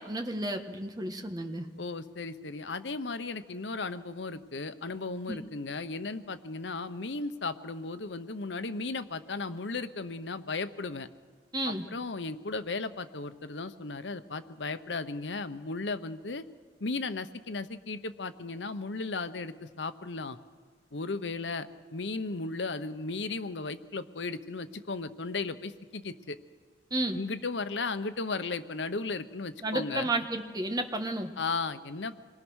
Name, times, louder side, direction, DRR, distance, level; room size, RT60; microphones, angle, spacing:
voice 1, 0.0-1.7 5.3-5.4 11.5-11.9 26.9-27.2 29.6-31.3, right 2 dB, 20° right, 5 dB, 1.5 m, -32 dB
voice 2, 1.8-11.1 11.6-16.4 16.8-20.4 20.9-26.4 27.1-30.1 31.4-32.2, left 3 dB, 90° left, 11 dB, 1.0 m, -35 dB
27.0 x 21.5 x 6.4 m, 1.5 s
head